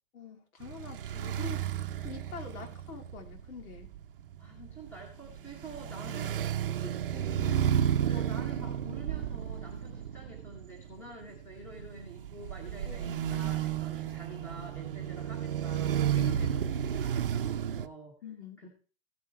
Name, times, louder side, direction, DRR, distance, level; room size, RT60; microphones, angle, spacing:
voice 1, 0.1-1.7 2.0-3.9 6.8-7.7 8.1-8.2 12.8-13.6 16.2-16.5 18.2-18.6, left 6 dB, 75° left, 4 dB, 3.5 m, -45 dB
sound 1, 0.6-17.9, right 9 dB, 40° right, 0.7 m, -32 dB
voice 2, 4.4-6.5 8.0-18.1 18.6-18.7, right 2 dB, 5° left, -1 dB, 1.2 m, -48 dB
15.0 x 7.7 x 4.7 m, 0.39 s
hypercardioid pair, 180°, 43 cm